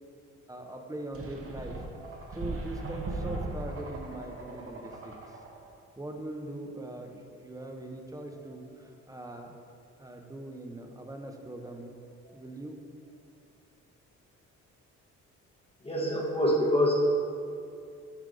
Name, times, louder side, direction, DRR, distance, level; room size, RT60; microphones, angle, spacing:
voice 1, 0.5-1.8 2.3-5.4 6.0-9.5 10.0-11.9 12.3-12.8, right 1 dB, 10° right, 3 dB, 0.7 m, -41 dB
sound 1, 1.1-5.7, right 2 dB, 50° right, 1.0 m, -38 dB
voice 2, 15.8-16.9, left 1 dB, 20° left, -3 dB, 1.0 m, -26 dB
7.6 x 3.4 x 5.1 m, 2.4 s
cardioid pair, 90°, 30 cm